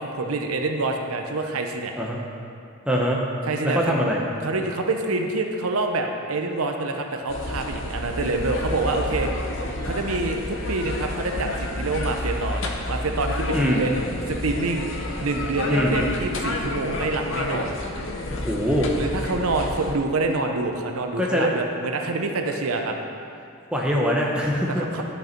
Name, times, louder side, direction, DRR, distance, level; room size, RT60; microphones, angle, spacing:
voice 1, 0.0-1.9 3.5-4.0 4.4-9.3 9.8-14.9 15.2-17.7 19.0-22.9 24.7-25.0, right 3 dB, 90° right, 4 dB, 0.8 m, -26 dB
voice 2, 2.9-3.2 3.6-4.2 13.5-13.9 15.7-16.0 18.4-18.9 21.2-21.6 23.7-25.0, equal, 5° right, -2 dB, 0.8 m, -23 dB
sound 1, 7.3-19.9, left 1 dB, 60° left, 0.7 m, -30 dB
11.0 x 5.5 x 4.5 m, 2.6 s
head